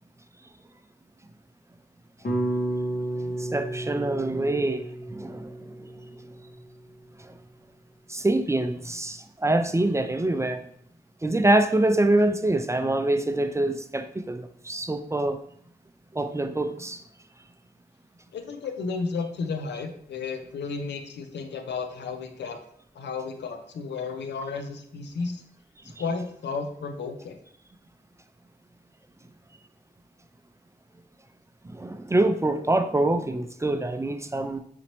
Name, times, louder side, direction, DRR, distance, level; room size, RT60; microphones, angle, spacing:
sound 1, 2.2-6.5, right 1 dB, 60° left, 0.9 m, -32 dB
voice 1, 3.2-5.9 7.2-7.3 8.1-10.6 11.2-15.4 16.1-17.0 25.9-26.0 31.6-34.6, right 2 dB, 15° right, 8 dB, 0.3 m, -25 dB
voice 2, 18.3-22.6 22.9-25.3 26.0-27.4, left 4 dB, 85° left, 6 dB, 0.5 m, -33 dB
4.1 x 2.9 x 3.0 m, 0.67 s
cardioid pair, 50°, 17 cm